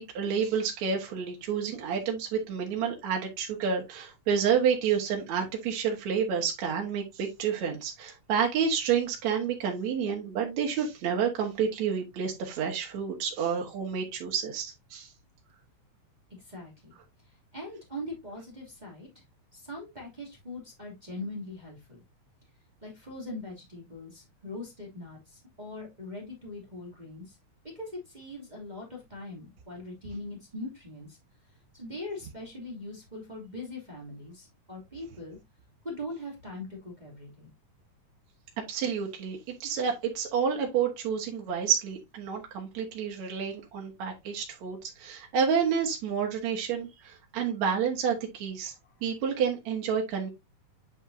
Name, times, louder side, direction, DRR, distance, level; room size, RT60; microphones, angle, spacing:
voice 1, 0.0-15.1 38.7-48.7 49.0-50.3, right 7 dB, 65° right, 2.7 m, -29 dB
voice 2, 16.5-16.9 17.5-19.1 19.5-22.0 22.8-27.2 27.7-31.2 31.7-35.4 35.8-37.5, left 1 dB, 15° right, 2.6 m, -41 dB
9.1 x 5.4 x 2.7 m
omnidirectional pair, 3.6 m